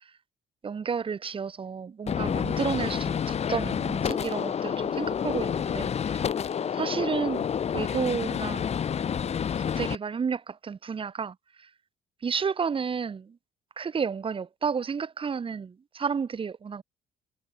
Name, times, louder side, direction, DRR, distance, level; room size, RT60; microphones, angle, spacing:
voice 1, 0.6-6.3 6.7-8.7 9.2-11.7 12.2-13.4 13.8-16.8, right 6 dB, 30° right, 2.1 m, -32 dB
Gunshot gunfire, 2.1-10.0, left 8 dB, 40° left, 1.2 m, -29 dB
cardioid pair, 110°, 17 cm